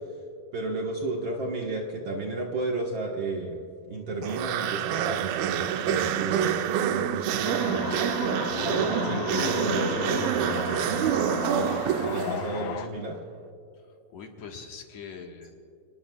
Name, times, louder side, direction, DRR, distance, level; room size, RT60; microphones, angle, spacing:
voice 1, 0.5-3.6 3.9-6.6 6.9-8.1 8.6-11.8 12.0-13.2, right 2 dB, 65° right, -2 dB, 1.2 m, -33 dB
sound 1, 4.2-12.7, right 9 dB, 80° right, 2.3 m, -27 dB
sound 2, 7.5-12.9, left 9 dB, 85° left, 2.6 m, -34 dB
voice 2, 8.3-8.7 13.7-13.8 14.1-15.5, left 5 dB, 55° left, 1 dB, 2.2 m, -43 dB
29.0 x 20.5 x 2.4 m, 2.6 s
omnidirectional pair, 4.4 m